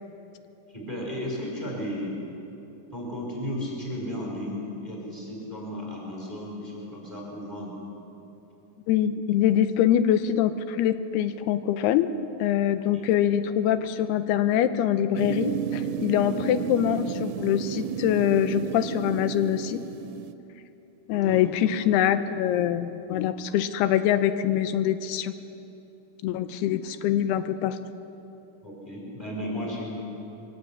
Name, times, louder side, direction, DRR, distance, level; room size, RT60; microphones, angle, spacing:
voice 1, 0.7-2.2 2.9-7.7 12.9-13.1 16.2-16.4 21.2-21.4 28.6-30.0, equal, 10° right, -3 dB, 4.4 m, -34 dB
voice 2, 8.9-12.1 12.4-19.8 21.1-25.3 26.2-27.8, left 10 dB, 85° left, 11 dB, 2.8 m, -24 dB
sound 1, 15.2-20.3, right 8 dB, 85° right, 2.7 m, -32 dB
22.5 x 17.5 x 8.6 m, 2.9 s
omnidirectional pair, 4.6 m